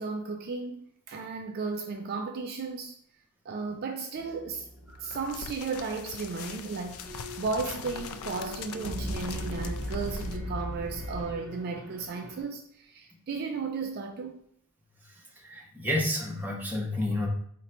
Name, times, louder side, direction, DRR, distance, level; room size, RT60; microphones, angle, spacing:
voice 1, 0.0-2.9 3.5-4.7 5.0-14.4, right 4 dB, 45° right, 0.3 m, -35 dB
sound 1, 4.2-11.3, equal, 35° left, 0.7 m, -53 dB
sound 2, 4.9-10.4, left 6 dB, 80° left, 0.3 m, -42 dB
sound 3, 7.0-12.4, equal, 60° right, 0.8 m, -38 dB
voice 2, 15.0-17.3, left 1 dB, 10° right, 0.6 m, -31 dB
3.7 x 2.2 x 4.2 m
head